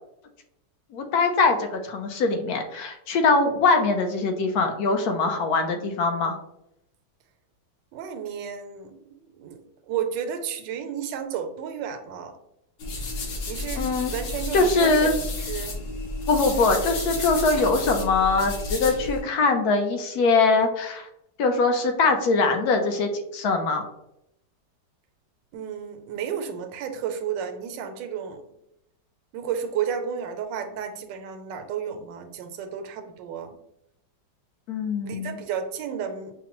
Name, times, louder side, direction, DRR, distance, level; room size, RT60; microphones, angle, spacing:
voice 1, 0.9-6.4 13.7-14.1 14.5-15.1 16.3-21.1 21.4-23.8 34.7-35.4, left 3 dB, 70° left, 5 dB, 1.0 m, -22 dB
voice 2, 7.9-12.4 13.5-15.8 25.5-28.4 29.3-33.6 35.0-36.3, right 8 dB, 85° right, 6 dB, 1.2 m, -32 dB
sound 1, 12.8-19.2, left 2 dB, 85° left, 1.5 m, -31 dB
5.8 x 2.1 x 2.9 m, 0.83 s
omnidirectional pair, 1.9 m